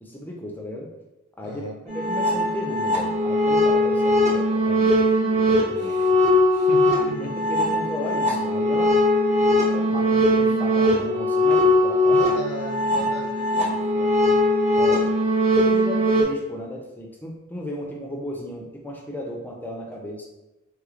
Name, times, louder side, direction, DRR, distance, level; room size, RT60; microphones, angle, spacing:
voice 1, 0.0-0.9 1.4-1.6 1.9-5.0 5.3-6.2 7.2-9.0 9.7-12.2 14.7-15.1 15.5-20.3, left 1 dB, 10° left, -1 dB, 0.4 m, -35 dB
voice 2, 1.4-1.7 5.8-6.1 6.5-7.2 9.3-10.0 12.1-14.2, left 1 dB, 90° left, 1 dB, 0.5 m, -36 dB
sound 1, 1.9-16.2, left 1 dB, 30° right, 0.7 m, -20 dB
3.2 x 3.1 x 2.4 m, 1.0 s
head